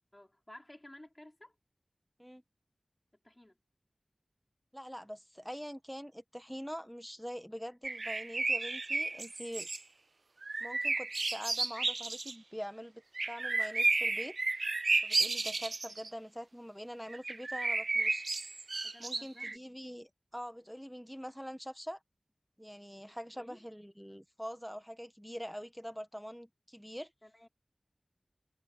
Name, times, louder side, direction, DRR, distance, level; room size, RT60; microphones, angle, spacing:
voice 1, 0.1-1.6 3.2-3.6 18.8-19.6 23.1-23.6 27.2-27.5, left 1 dB, 25° left, 5.1 m, -55 dB
voice 2, 4.7-9.7 10.6-14.4 15.0-18.3 19.0-22.0 22.6-27.1, equal, ahead, 1.4 m, -44 dB
sound 1, 7.8-9.8 10.4-12.3 13.2-16.1 17.1-19.6, right 3 dB, 65° right, 0.4 m, -33 dB
wide cardioid pair, 55°, 0 cm